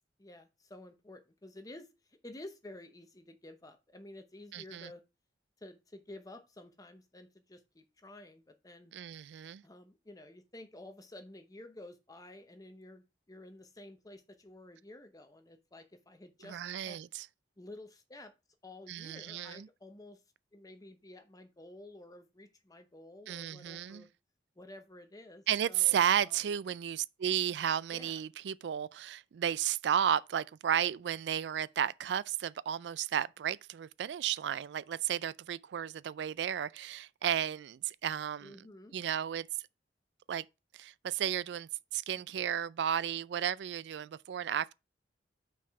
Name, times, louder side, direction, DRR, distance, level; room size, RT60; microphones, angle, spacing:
voice 1, 0.2-5.0 5.6-8.9 9.6-17.0 17.6-18.3 18.6-20.2 20.5-24.1 24.6-26.4 27.9-28.2 38.4-39.0, left 1 dB, 20° left, 0.7 m, -51 dB
voice 2, 4.5-4.9 8.9-9.6 16.4-17.3 18.9-19.7 23.3-24.0 25.5-38.6 38.9-39.5 40.3-40.4 40.7-44.7, right 9 dB, 70° right, 0.3 m, -33 dB
5.9 x 4.8 x 4.6 m
head